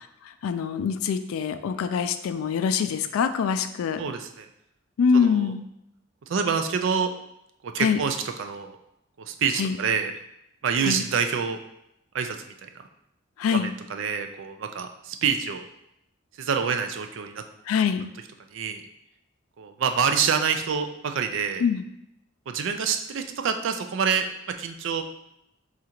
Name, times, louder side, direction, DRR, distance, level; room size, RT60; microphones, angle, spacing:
voice 1, 0.2-4.0 5.0-5.6 7.8-8.0 9.6-9.8 10.8-11.0 13.4-13.7 17.7-18.1 21.6-21.8, left 6 dB, 85° left, 10 dB, 0.3 m, -24 dB
voice 2, 4.0-4.5 5.1-5.5 6.3-7.1 7.6-8.8 9.2-10.1 10.6-11.6 12.1-12.4 12.6-12.7 13.5-15.7 16.4-17.4 18.5-18.8 19.6-21.6 22.5-24.3 24.6-25.0, right 6 dB, 65° right, 7 dB, 0.4 m, -27 dB
3.8 x 2.5 x 4.3 m, 0.81 s
head